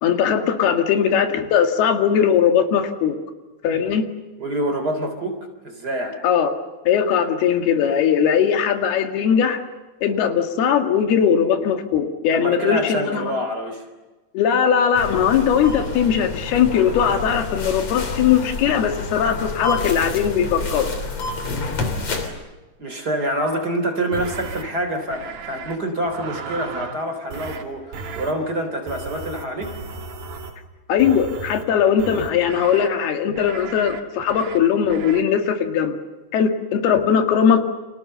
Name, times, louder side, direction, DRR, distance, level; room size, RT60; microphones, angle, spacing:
voice 1, 0.0-3.2 3.6-4.0 6.2-6.5 6.9-9.6 10.0-13.3 14.3-20.9 30.9-36.0 36.3-37.6, left 8 dB, 85° left, 6 dB, 4.0 m, -19 dB
voice 2, 4.4-5.4 5.6-6.2 12.3-13.8 22.8-29.7, right 1 dB, 25° right, 5 dB, 3.8 m, -26 dB
sound 1, 14.9-22.3, left 3 dB, 45° left, 4.1 m, -29 dB
sound 2, 24.1-24.6 25.1-25.8 26.1-27.0 27.3-27.6 27.9-28.3 28.9-30.6 31.0-31.6 32.0-32.9 33.4-34.0 34.3-34.6 34.9-35.2, right 4 dB, 70° right, 4.4 m, -35 dB
30.0 x 27.5 x 6.8 m, 1.2 s
omnidirectional pair, 4.4 m